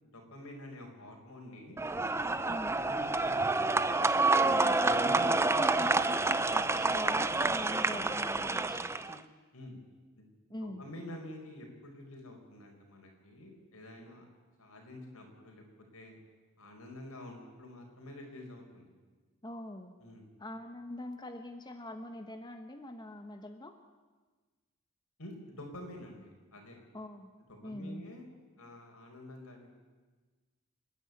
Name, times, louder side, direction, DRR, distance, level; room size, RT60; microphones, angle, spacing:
voice 1, 0.1-1.8 2.8-3.7 4.8-6.0 9.5-9.8 10.2-14.2 14.6-15.6 15.9-16.2 16.6-18.9 20.0-20.2 25.2-26.8 27.5-29.7, left 1 dB, 85° left, 2 dB, 5.0 m, -48 dB
sound 1, 1.8-9.2, right 3 dB, 10° right, 0.5 m, -28 dB
voice 2, 2.5-2.8 4.4-4.8 5.1-9.3 10.5-10.8 19.4-20.0 20.4-23.8 26.9-27.3 27.6-28.1, left 1 dB, 20° left, 6 dB, 1.1 m, -43 dB
28.0 x 10.0 x 9.4 m, 1.3 s
head